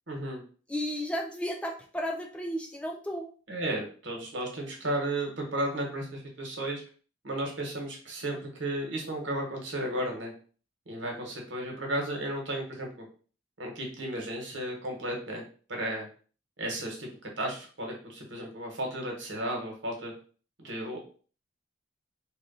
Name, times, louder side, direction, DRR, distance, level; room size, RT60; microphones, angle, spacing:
voice 1, 0.1-0.4 3.5-6.8 7.2-10.3 10.9-13.0 13.6-15.4 15.7-16.1 16.6-17.1 17.4-20.1 20.6-21.1, right 1 dB, 80° right, 1 dB, 1.2 m, -34 dB
voice 2, 0.7-3.3, equal, 5° left, 1 dB, 0.4 m, -33 dB
3.1 x 2.5 x 3.9 m, 0.40 s
head